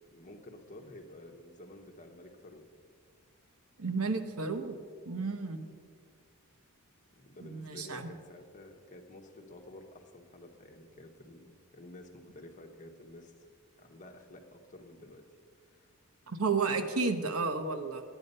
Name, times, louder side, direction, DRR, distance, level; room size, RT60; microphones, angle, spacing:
voice 1, 0.1-2.6 7.2-13.3 13.8-15.3 15.7-15.9, left 1 dB, 35° left, 3 dB, 1.1 m, -51 dB
voice 2, 3.8-4.8 5.0-5.6 7.4-8.1 16.3-18.0, right 4 dB, 75° right, 7 dB, 0.9 m, -32 dB
12.5 x 9.2 x 5.4 m, 2.1 s
head